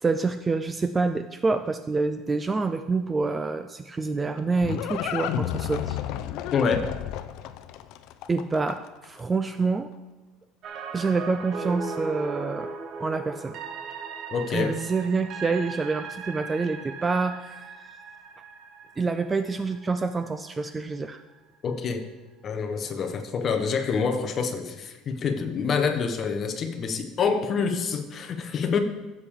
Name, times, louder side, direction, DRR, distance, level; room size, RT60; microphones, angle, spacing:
voice 1, 0.0-6.0 8.3-9.9 10.9-12.7 13.0-13.6 14.5-17.6 19.0-21.2, right 4 dB, 15° right, 9 dB, 0.3 m, -27 dB
Livestock farm animals working animals, 4.0-9.1, left 11 dB, 55° left, 0.5 m, -32 dB
voice 2, 6.5-7.0 14.3-14.8 21.6-22.1 22.4-28.8, left 5 dB, 30° left, 6 dB, 0.9 m, -27 dB
sound 1, 10.6-20.7 21.0-21.1, right 5 dB, 40° right, 0.9 m, -38 dB
14.5 x 7.1 x 3.6 m, 1.2 s
cardioid pair, 170°, 0 cm